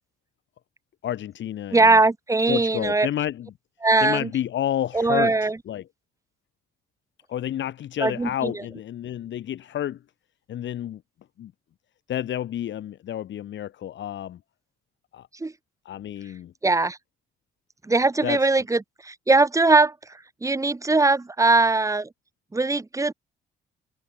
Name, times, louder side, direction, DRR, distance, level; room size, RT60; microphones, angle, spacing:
voice 1, 1.0-1.9 2.5-3.5 4.0-5.3 5.7-5.8 7.3-10.0 10.5-11.0 11.4-11.5 12.1-14.4 15.1-15.3 15.9-16.5 18.2-18.4, left 11 dB, 70° left, 2.0 m, -30 dB
voice 2, 1.7-3.1 3.8-4.3 4.9-5.6 8.0-8.5 15.4-15.5 16.6-17.0 17.8-19.9 20.4-22.1 22.5-23.1, right 3 dB, 15° right, 1.3 m, -20 dB
cardioid pair, 90°, 20 cm